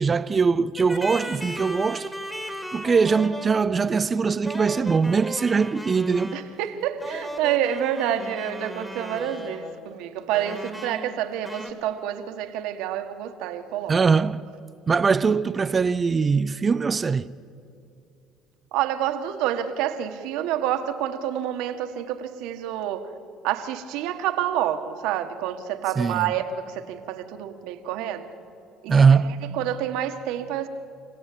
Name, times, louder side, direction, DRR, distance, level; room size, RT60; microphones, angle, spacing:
voice 1, 0.0-2.1 2.7-6.4 13.9-14.4 14.9-17.3 26.0-26.2 28.9-29.3, right 5 dB, 30° right, 0.5 m, -21 dB
sound 1, 0.8-3.7 4.5-6.5 7.0-9.8 10.3-11.2 11.4-11.7, equal, 5° left, 2.7 m, -36 dB
voice 2, 6.3-14.0 18.7-23.1 23.4-28.3 28.8-30.7, right 11 dB, 80° right, 1.6 m, -28 dB
27.5 x 17.5 x 8.6 m
cardioid pair, 105°, 0 cm